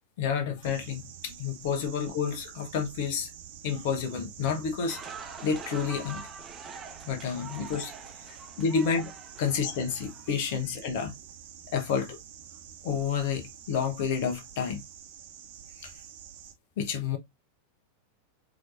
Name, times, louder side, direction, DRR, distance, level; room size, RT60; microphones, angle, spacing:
voice 1, 0.2-3.3 3.6-5.0 5.4-6.2 7.1-7.9 8.3-9.1 9.4-11.1 11.7-12.2 12.8-14.8 15.8-15.9 16.8-17.2, left 6 dB, 50° left, 1.1 m, -30 dB
sound 1, 0.6-16.5, right 9 dB, 50° right, 1.0 m, -48 dB
sound 2, 4.9-10.5, right 4 dB, 20° right, 0.9 m, -45 dB
4.9 x 3.1 x 2.6 m
figure-of-eight pair, 90°, 0 cm